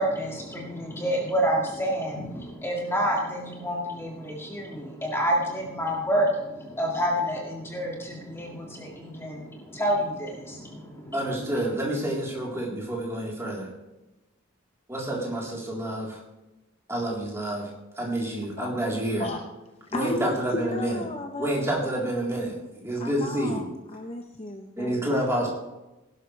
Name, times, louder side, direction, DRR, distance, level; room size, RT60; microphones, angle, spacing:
voice 1, 0.0-11.1, equal, 10° left, -2 dB, 2.1 m, -28 dB
voice 2, 11.1-13.7 14.9-16.2 16.9-17.7 18.0-19.3 19.9-21.0 21.4-23.6 24.8-25.5, right 1 dB, 15° right, -4 dB, 3.6 m, -28 dB
voice 3, 19.9-20.3 20.5-21.9 23.0-23.6 23.9-25.0, left 2 dB, 30° left, 4 dB, 0.8 m, -34 dB
18.0 x 12.0 x 3.3 m, 1.0 s
head